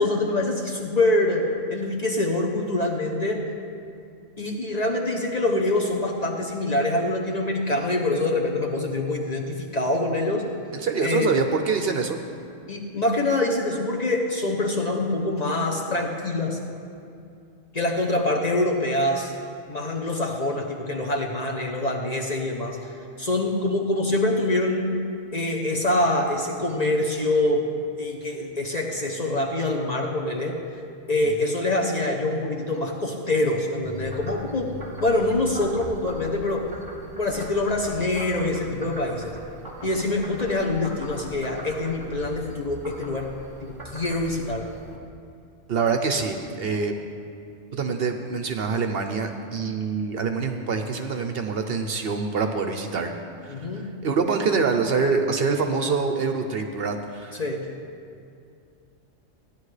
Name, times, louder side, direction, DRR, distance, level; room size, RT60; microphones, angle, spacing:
voice 1, 0.0-3.5 4.4-10.5 11.0-11.4 12.7-16.6 17.7-19.3 19.7-22.8 23.2-25.0 25.3-27.6 28.0-30.6 31.1-34.7 35.0-36.7 37.2-39.4 39.8-43.3 43.6-44.7 53.5-53.9 57.3-57.7, left 2 dB, 40° left, 0 dB, 0.8 m, -25 dB
voice 2, 10.7-12.2 31.4-31.5 45.7-46.9 47.7-53.1 53.4-57.3, right 5 dB, 60° right, 6 dB, 0.8 m, -25 dB
Frog, 33.8-45.0, right 1 dB, 20° right, 0.9 m, -40 dB
14.5 x 9.9 x 3.3 m, 2.5 s
omnidirectional pair, 1.3 m